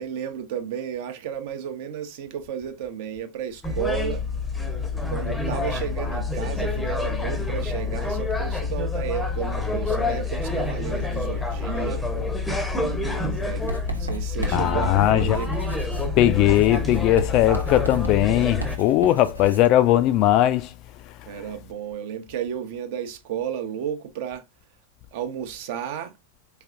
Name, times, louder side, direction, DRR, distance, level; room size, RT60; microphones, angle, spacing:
voice 1, 0.0-4.2 5.1-12.3 13.4-15.5 21.3-24.4 25.1-26.1, right 9 dB, 50° right, 0.8 m, -33 dB
sound 1, 3.6-18.8, left 3 dB, 5° left, 0.7 m, -27 dB
Writing, 13.7-19.7, right 2 dB, 85° right, 0.8 m, -35 dB
voice 2, 14.5-15.4 16.2-20.7, left 13 dB, 40° left, 0.4 m, -19 dB
4.6 x 3.2 x 2.5 m
figure-of-eight pair, 90°, 0 cm